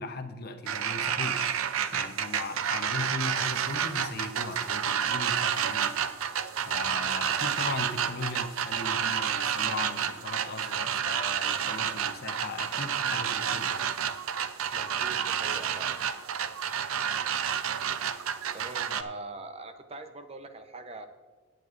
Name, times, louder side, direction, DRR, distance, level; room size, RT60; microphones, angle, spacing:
voice 1, 0.0-1.6 1.9-6.0 6.6-13.9, left 3 dB, 45° left, 7 dB, 0.8 m, -38 dB
sound 1, 0.7-19.0, right 8 dB, 80° right, 0.5 m, -30 dB
voice 2, 14.7-15.9 18.5-21.1, right 2 dB, 30° right, 7 dB, 0.7 m, -42 dB
17.5 x 9.1 x 2.6 m, 1.4 s
head